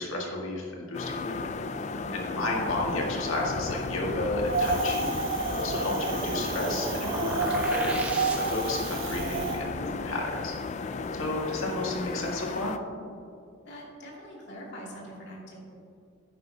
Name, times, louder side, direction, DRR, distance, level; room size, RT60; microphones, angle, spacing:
voice 1, 0.0-1.4 2.1-5.2 5.5-8.0 8.3-10.5 11.2-12.7, left 2 dB, 80° left, -1 dB, 1.8 m, -32 dB
sound 1, 0.9-12.8, left 4 dB, 35° left, 0.3 m, -35 dB
voice 2, 1.9-2.5 10.9-11.3 13.6-15.6, equal, 55° left, -4 dB, 2.5 m, -43 dB
Wind, 4.5-9.6, right 3 dB, 65° right, 1.0 m, -30 dB
sound 2, 5.3-8.9, right 1 dB, 5° right, 0.9 m, -37 dB
11.0 x 9.7 x 2.8 m, 2.5 s
head